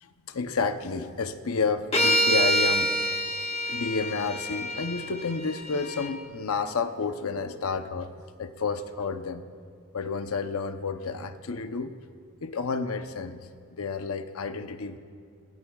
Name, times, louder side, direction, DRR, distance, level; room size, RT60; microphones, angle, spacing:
voice 1, 0.0-3.1 3.7-8.1 8.4-9.4 9.9-11.9 12.4-13.4 13.8-15.0, left 4 dB, 85° left, 9 dB, 0.7 m, -30 dB
sound 1, 1.9-6.1, equal, 25° left, 1.2 m, -27 dB
26.0 x 19.0 x 2.4 m, 2.3 s
head